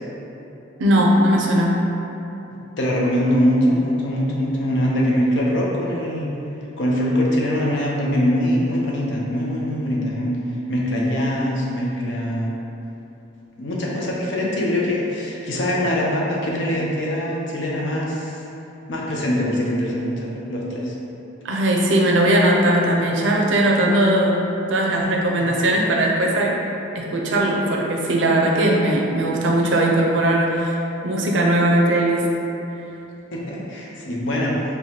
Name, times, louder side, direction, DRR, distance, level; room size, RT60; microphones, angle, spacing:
voice 1, 0.8-1.8 21.4-24.4 24.7-26.6 26.9-30.8 31.0-32.3, right 1 dB, 75° right, -1 dB, 0.5 m, -19 dB
voice 2, 2.8-6.3 6.8-10.4 10.7-12.5 13.6-18.4 18.9-20.9 25.4-25.5 33.3-34.6, equal, 75° left, -3 dB, 0.6 m, -22 dB
4.6 x 2.2 x 2.8 m, 3.0 s
head